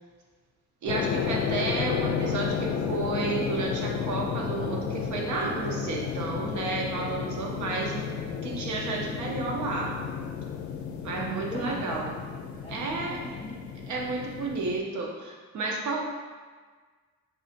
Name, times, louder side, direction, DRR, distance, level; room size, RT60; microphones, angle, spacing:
voice 1, 0.8-8.2 8.4-10.0 11.0-12.1 12.7-13.2 13.9-16.0, right 3 dB, 70° right, -1 dB, 0.7 m, -31 dB
sound 1, 0.9-14.8, left 7 dB, 70° left, 0.5 m, -32 dB
voice 2, 11.1-13.7, left 2 dB, 20° left, -5 dB, 0.5 m, -41 dB
4.1 x 2.7 x 2.5 m, 1.5 s
cardioid pair, 90°, 30 cm